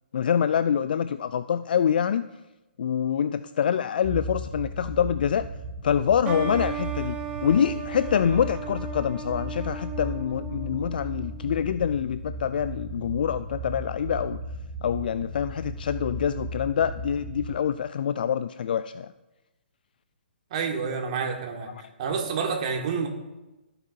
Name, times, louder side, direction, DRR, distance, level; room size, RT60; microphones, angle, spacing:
voice 1, 0.1-2.3 2.8-5.4 5.8-7.2 7.4-14.4 14.8-19.1, left 8 dB, 55° left, 13 dB, 0.3 m, -25 dB
sound 1, 4.0-17.5, right 1 dB, 15° left, 2.0 m, -36 dB
sound 2, 6.2-11.7, right 6 dB, 20° right, 1.2 m, -36 dB
voice 2, 20.5-21.7 22.0-23.1, right 5 dB, 40° right, 2 dB, 1.8 m, -28 dB
14.5 x 8.9 x 2.7 m, 1.0 s
figure-of-eight pair, 130°, 6 cm